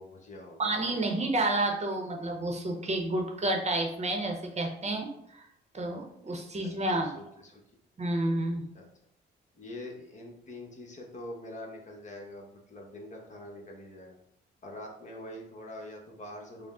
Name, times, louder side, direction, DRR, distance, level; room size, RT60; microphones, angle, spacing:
voice 1, 0.0-0.9 7.0-7.6 8.7-8.9 9.5-14.2 14.6-16.7, left 1 dB, 40° left, 0 dB, 1.0 m, -44 dB
voice 2, 0.6-5.5 5.7-7.1 8.0-8.7, right 2 dB, 35° right, 2 dB, 0.8 m, -30 dB
5.1 x 2.1 x 3.6 m, 0.74 s
cardioid pair, 90°, 20 cm